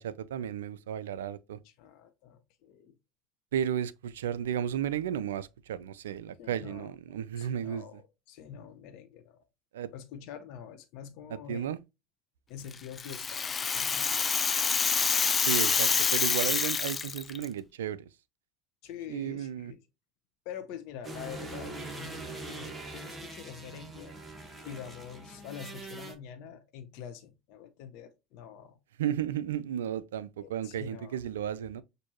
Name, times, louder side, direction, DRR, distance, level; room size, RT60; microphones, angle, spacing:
voice 1, 0.0-1.6 3.5-7.8 9.7-9.9 11.3-11.8 15.4-18.1 19.1-19.7 29.0-31.8, right 9 dB, 80° right, 0.3 m, -33 dB
voice 2, 1.6-2.9 6.4-9.4 9.9-11.7 12.5-14.6 18.8-19.8 20.4-24.2 24.6-28.8 30.4-31.2, left 8 dB, 60° left, 0.7 m, -46 dB
Rattle (instrument), 12.7-17.4, left 5 dB, 25° left, 0.4 m, -27 dB
sound 1, 21.0-26.1, right 2 dB, 15° right, 1.4 m, -42 dB
6.1 x 2.6 x 2.9 m
hypercardioid pair, 75°, 0 cm